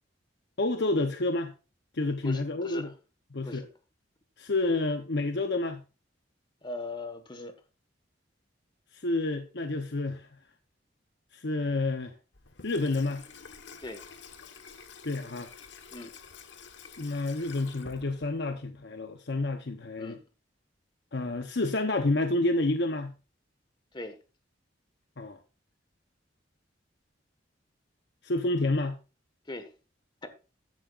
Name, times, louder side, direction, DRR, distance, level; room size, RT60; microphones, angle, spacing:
voice 1, 0.6-1.5 1.9-2.9 3.3-3.7 4.4-5.8 8.9-10.3 11.3-12.1 12.6-13.2 15.0-15.5 17.0-20.2 21.1-23.1 25.2-25.4 28.2-29.0, left 2 dB, 60° left, 0.9 m, -29 dB
voice 2, 2.2-2.9 3.4-3.7 6.6-7.6 13.8-14.0 15.9-16.1 20.0-20.2 23.9-24.2 29.5-29.7 30.2-30.3, left 2 dB, 25° left, 1.5 m, -39 dB
Water tap faucet / Sink (filling or washing), 12.3-18.6, left 5 dB, 80° left, 1.3 m, -49 dB
14.0 x 10.5 x 2.5 m
head